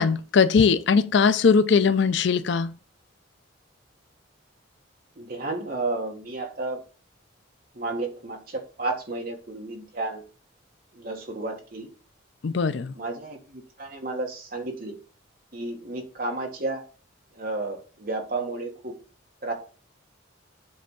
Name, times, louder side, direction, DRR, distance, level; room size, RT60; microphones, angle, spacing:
voice 1, 0.0-2.8 12.4-12.9, left 5 dB, 60° left, 0.4 m, -20 dB
voice 2, 5.2-6.8 7.7-10.2 10.9-11.9 12.9-15.0 15.5-16.8 17.3-19.0 19.4-19.5, right 2 dB, 45° right, 1.5 m, -32 dB
7.7 x 3.4 x 5.4 m
head